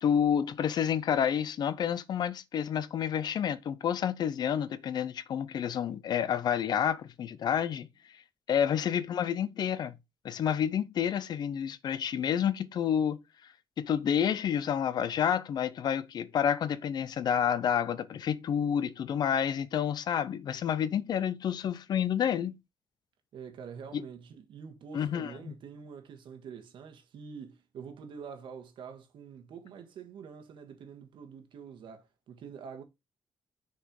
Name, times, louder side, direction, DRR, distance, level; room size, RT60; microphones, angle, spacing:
voice 1, 0.0-7.9 8.5-10.0 10.2-13.2 13.8-22.6 23.9-24.0 24.9-25.3, left 8 dB, 55° left, 0.6 m, -29 dB
voice 2, 23.3-32.8, right 6 dB, 75° right, 1.5 m, -46 dB
6.6 x 4.3 x 4.7 m
wide cardioid pair, 160°, 8 cm